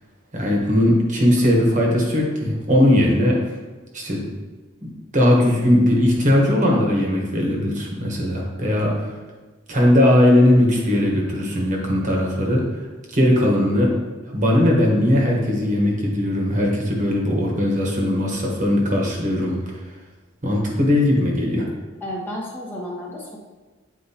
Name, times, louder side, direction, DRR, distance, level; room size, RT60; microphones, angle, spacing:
voice 1, 0.3-3.4 3.9-4.2 5.1-9.1 9.7-12.6 13.1-13.9 14.3-19.6 20.4-21.7, left 1 dB, 40° right, -1 dB, 1.2 m, -19 dB
voice 2, 22.0-23.4, left 1 dB, 10° left, -4 dB, 1.0 m, -32 dB
8.2 x 4.4 x 2.9 m, 1.3 s
head